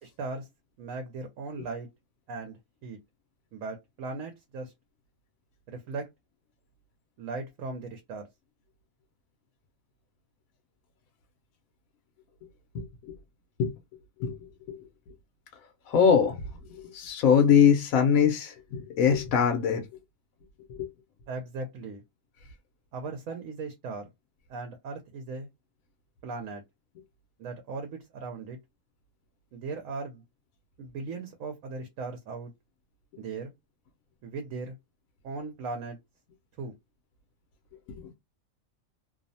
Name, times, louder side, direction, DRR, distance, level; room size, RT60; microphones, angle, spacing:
voice 1, 0.0-0.5 0.8-1.9 2.3-3.0 3.5-4.7 5.7-6.1 7.2-8.3 21.3-22.0 22.9-24.1 24.5-25.5 26.2-26.6 27.4-28.6 29.5-30.2 30.8-32.5 33.2-33.5 34.2-34.7 35.2-36.0 36.6-36.7, right 3 dB, 80° right, 1.0 m, -38 dB
voice 2, 12.7-13.2 13.6-13.7 14.2-14.8 15.9-16.4 16.7-19.8 20.7-20.9 37.9-38.0, left 7 dB, 90° left, 1.0 m, -23 dB
2.7 x 2.0 x 2.6 m
omnidirectional pair, 1.4 m